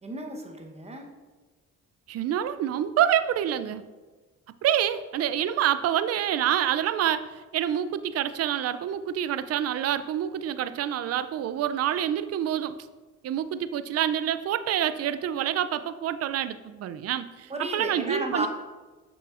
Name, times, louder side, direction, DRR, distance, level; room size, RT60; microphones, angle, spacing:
voice 1, 0.0-1.1 17.5-18.5, right 1 dB, 20° right, 3 dB, 1.0 m, -33 dB
voice 2, 2.1-3.8 4.6-12.8 13.2-18.5, right 10 dB, 55° right, 13 dB, 0.4 m, -27 dB
6.8 x 6.0 x 2.5 m, 1.3 s
cardioid pair, 90°, 30 cm